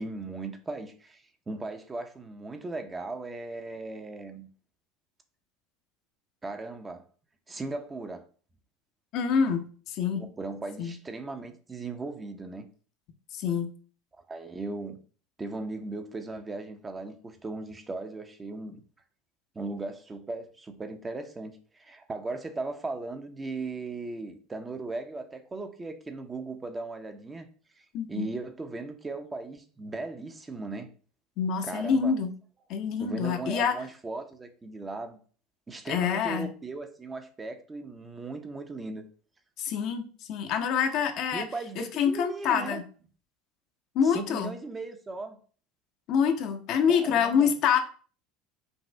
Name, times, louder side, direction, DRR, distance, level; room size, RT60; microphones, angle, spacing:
voice 1, 0.0-4.5 6.4-7.0 7.5-8.2 10.1-12.7 14.3-15.0 15.4-18.8 19.5-27.5 27.8-30.9 31.6-32.1 33.0-35.2 35.7-39.0 41.3-42.8 44.0-45.4 46.9-47.5, right 3 dB, 20° right, 0.7 m, -37 dB
voice 2, 9.1-10.2 10.8-10.9 13.3-13.7 27.9-28.3 31.4-32.3 32.7-33.8 35.9-36.5 39.6-40.0 40.3-41.4 41.8-42.8 43.9-44.5 46.1-47.8, left 7 dB, 55° left, 0.7 m, -26 dB
5.3 x 2.5 x 3.3 m
hypercardioid pair, 75°, 0 cm